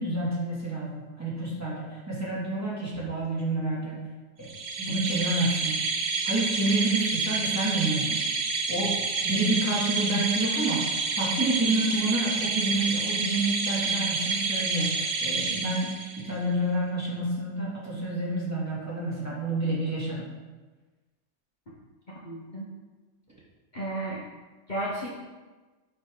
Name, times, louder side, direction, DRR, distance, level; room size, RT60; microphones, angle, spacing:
voice 1, 0.0-4.0 4.4-4.5 4.8-5.8 6.2-8.2 8.7-20.3, right 2 dB, 10° right, -8 dB, 2.6 m, -29 dB
sound 1, 4.5-16.3, right 4 dB, 80° right, 1.4 m, -29 dB
voice 2, 22.2-22.7 23.7-24.2 24.7-25.2, right 1 dB, 35° left, -6 dB, 1.4 m, -33 dB
9.9 x 5.8 x 4.0 m, 1.3 s
omnidirectional pair, 1.4 m